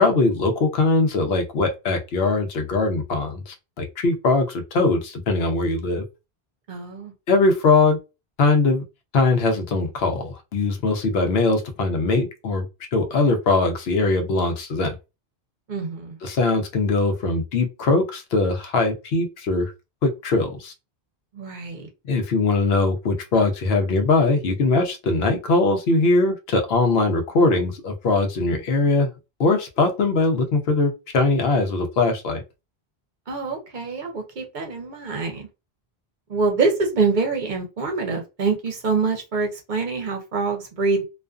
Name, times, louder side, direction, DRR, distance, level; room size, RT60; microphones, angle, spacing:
voice 1, 0.0-6.0 7.3-8.0 8.4-8.8 9.1-12.7 12.9-14.9 16.2-19.7 20.0-20.7 22.1-29.1 29.4-32.4, left 3 dB, 75° left, 0.9 m, -21 dB
voice 2, 6.7-7.1 15.7-16.2 21.3-21.9 33.3-35.5 36.3-41.0, right 4 dB, 55° right, 0.7 m, -25 dB
2.4 x 2.4 x 2.3 m
omnidirectional pair, 1.0 m